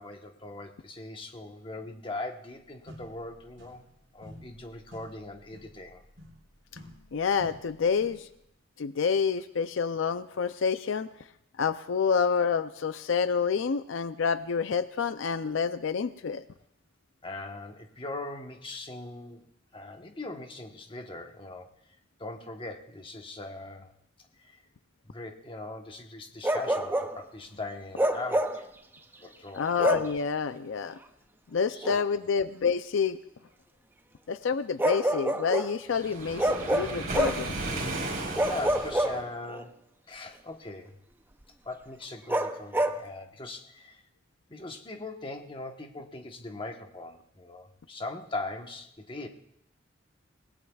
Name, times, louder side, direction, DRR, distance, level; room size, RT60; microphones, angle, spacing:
voice 1, 0.0-6.0 17.2-19.4 19.7-21.7 22.2-23.9 24.4-24.6 25.0-28.7 29.2-29.8 31.7-32.0 38.0-39.8 40.1-41.0 41.6-44.0 44.5-49.3, left 2 dB, 25° left, 4 dB, 1.1 m, -40 dB
sound 1, 2.6-2.7 2.9-4.0 4.2-8.3, left 1 dB, 70° right, 3.5 m, -51 dB
voice 2, 7.1-8.3 8.8-11.1 11.6-16.4 29.5-31.0 31.5-33.2 34.3-37.6, left 6 dB, 75° left, 12 dB, 0.5 m, -28 dB
Bark, 26.4-27.2 28.0-28.7 29.8-30.2 31.8-32.0 34.8-35.8 36.4-37.5 38.3-39.6 42.3-43.0, right 1 dB, 10° right, 0.5 m, -27 dB
Waves surf, 35.9-39.2, right 2 dB, 50° right, 4.0 m, -35 dB
29.0 x 18.0 x 2.4 m, 0.75 s
head